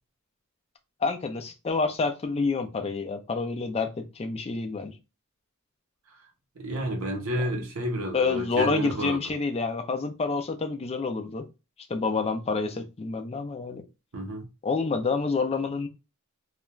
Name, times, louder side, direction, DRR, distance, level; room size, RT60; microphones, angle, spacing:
voice 1, 1.0-4.9 7.3-7.4 8.1-11.5 11.9-13.8 14.6-15.9, left 4 dB, 30° left, 0.4 m, -28 dB
voice 2, 6.6-9.2 14.1-14.4, right 1 dB, 85° right, 0.9 m, -30 dB
2.4 x 2.1 x 3.0 m
head